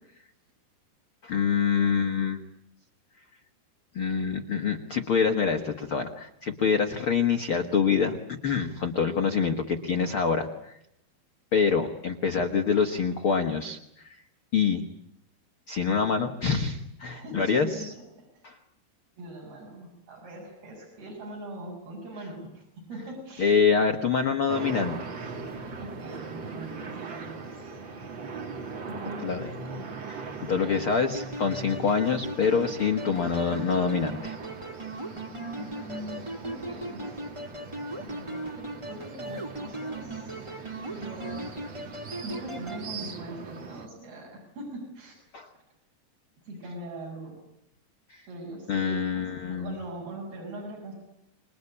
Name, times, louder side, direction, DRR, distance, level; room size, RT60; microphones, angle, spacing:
voice 1, 1.2-2.4 3.9-8.2 8.4-10.8 11.5-14.2 14.5-14.8 15.7-17.9 18.4-18.6 23.4-25.1 29.2-29.5 30.1-34.4 45.3-45.5 48.1-48.2 48.7-49.8, left 6 dB, 65° left, 4 dB, 1.3 m, -26 dB
voice 2, 17.0-17.9 18.3-18.4 19.2-23.6 24.4-24.5 25.8-27.5 27.8-28.1 28.9-30.0 30.4-31.0 35.6-37.2 38.0-40.3 40.9-41.5 42.2-45.2 46.4-47.4 48.3-50.9, right 1 dB, 65° right, -3 dB, 8.6 m, -41 dB
sound 1, 24.5-43.9, right 4 dB, 40° right, 1.8 m, -40 dB
sound 2, 31.1-42.8, right 1 dB, 20° right, 0.8 m, -38 dB
28.0 x 21.5 x 9.9 m, 0.79 s
omnidirectional pair, 4.8 m